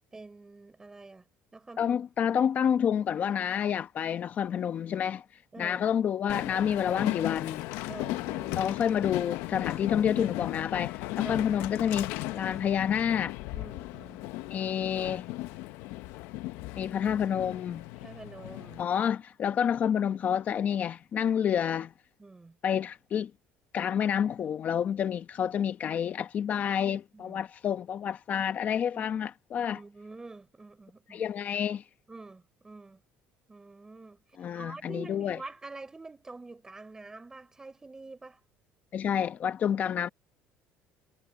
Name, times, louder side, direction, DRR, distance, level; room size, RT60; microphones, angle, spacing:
voice 1, 0.1-1.3 1.5-2.4 5.5-5.9 7.9-8.7 9.8-9.9 11.2-11.5 13.5-14.3 17.9-18.9 22.2-22.6 26.8-27.4 28.9-29.1 29.7-31.3 32.1-33.0 33.5-38.4, right 3 dB, 15° right, 3.7 m, -47 dB
voice 2, 1.8-5.2 5.6-7.6 8.6-13.3 14.5-15.3 16.8-17.8 18.8-21.9 22.6-23.3 23.7-29.8 31.1-31.8 34.4-35.4 38.9-40.1, left 8 dB, 40° left, 0.9 m, -29 dB
Train, 6.3-18.8, left 18 dB, 85° left, 0.9 m, -36 dB
cardioid pair, 130°, 4 cm